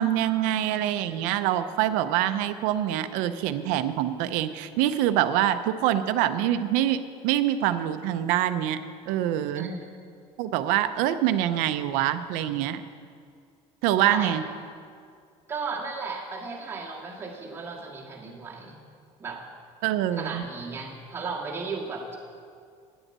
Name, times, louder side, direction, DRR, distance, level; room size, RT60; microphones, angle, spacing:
voice 1, 0.0-8.8 9.1-9.7 10.4-12.8 13.8-14.4 19.8-20.4, right 12 dB, 90° right, 10 dB, 0.6 m, -25 dB
voice 2, 14.0-14.3 15.5-18.8 19.2-19.4 20.2-22.2, right 4 dB, 15° right, -4 dB, 1.8 m, -35 dB
9.8 x 8.1 x 8.7 m, 2.2 s
cardioid pair, 175°, 13 cm